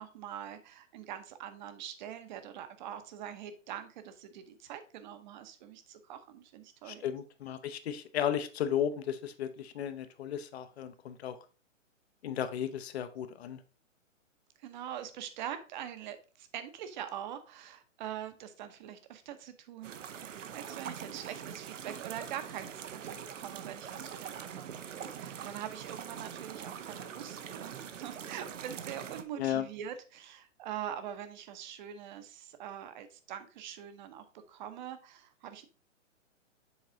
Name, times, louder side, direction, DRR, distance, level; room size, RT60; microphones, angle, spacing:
voice 1, 0.0-7.1 14.6-35.7, right 10 dB, 35° right, 10 dB, 0.9 m, -44 dB
voice 2, 6.9-11.4 12.2-13.6 29.4-29.7, left 9 dB, 55° left, 10 dB, 0.9 m, -34 dB
sound 1, 19.8-29.2, right 8 dB, 70° right, 0.8 m, -43 dB
7.2 x 4.1 x 3.8 m, 0.36 s
hypercardioid pair, 135°, 39 cm